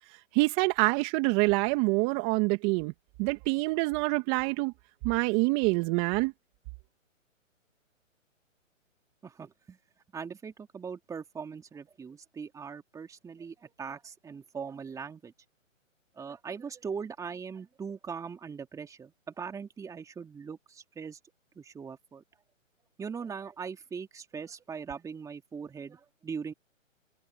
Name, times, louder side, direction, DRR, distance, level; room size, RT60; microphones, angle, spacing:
voice 1, 0.3-2.9 3.2-4.7 5.0-6.3, right 27 dB, 25° right, 1.9 m, -26 dB
voice 2, 9.2-9.8 10.1-15.3 16.1-21.2 21.5-22.2 23.0-26.5, right 6 dB, 10° right, 2.8 m, -40 dB
hypercardioid pair, 140°, 40 cm